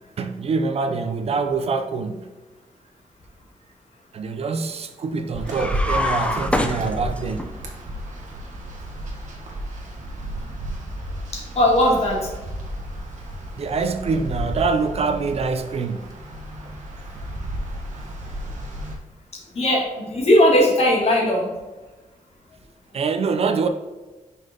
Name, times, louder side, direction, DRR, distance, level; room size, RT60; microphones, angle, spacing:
voice 1, 0.2-2.3 4.1-7.5 13.6-16.2 22.9-23.7, right 4 dB, 50° right, 0.5 m, -25 dB
sound 1, 5.3-19.0, equal, 65° right, 1.4 m, -33 dB
sound 2, 5.5-7.5, left 1 dB, 10° left, 0.5 m, -25 dB
voice 2, 11.3-12.3 19.6-21.5, left 1 dB, 50° left, 1.7 m, -18 dB
5.6 x 5.4 x 3.8 m
wide cardioid pair, 165°, 13 cm